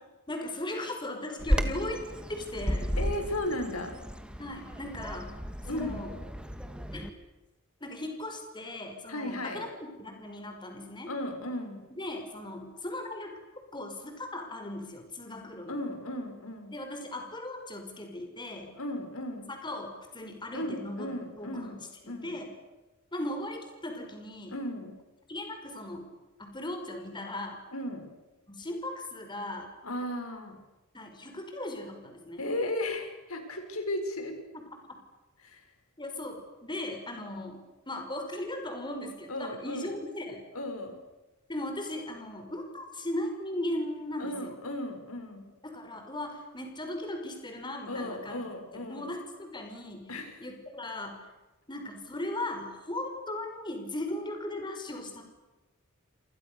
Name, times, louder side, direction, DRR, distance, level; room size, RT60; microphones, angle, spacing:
voice 1, 0.3-2.0 2.3-2.9 4.4-5.3 5.7-6.1 6.9-7.1 7.8-9.7 9.9-11.1 12.0-13.3 13.7-15.8 16.7-18.7 19.5-21.1 21.4-21.8 22.0-22.5 23.1-24.5 25.3-26.1 26.4-27.6 28.5-29.7 30.9-32.4 34.9-35.0 36.0-40.4 41.5-44.5 45.6-48.4 48.7-50.1 50.4-51.3 51.7-55.2, left 1 dB, 20° left, 4 dB, 5.4 m, -38 dB
Bird vocalization bird call bird song, 1.4-7.1, equal, 5° right, 2.4 m, -33 dB
voice 2, 3.0-4.0 5.6-6.0 9.1-9.6 11.1-11.8 15.7-16.8 18.7-19.5 20.5-22.4 24.5-24.9 27.7-28.1 29.8-30.6 32.4-34.4 35.4-35.7 39.3-39.9 40.5-41.0 44.2-45.5 47.9-49.1 50.1-50.4, left 1 dB, 90° left, 5 dB, 7.0 m, -35 dB
29.0 x 28.0 x 6.9 m, 1.1 s
head